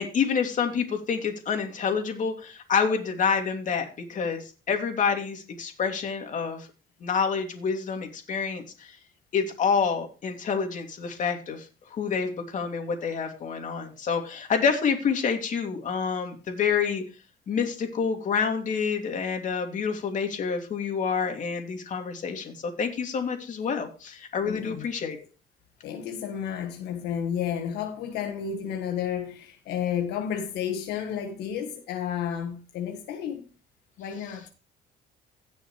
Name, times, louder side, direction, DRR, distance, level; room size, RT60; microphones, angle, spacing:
voice 1, 0.0-6.7 7.0-9.0 9.3-17.0 17.5-25.2, left 6 dB, 50° left, 2.7 m, -28 dB
voice 2, 24.4-24.9 25.8-33.5 34.0-34.4, left 8 dB, 85° left, 1.6 m, -31 dB
17.0 x 6.4 x 3.2 m
cardioid pair, 110°, 17 cm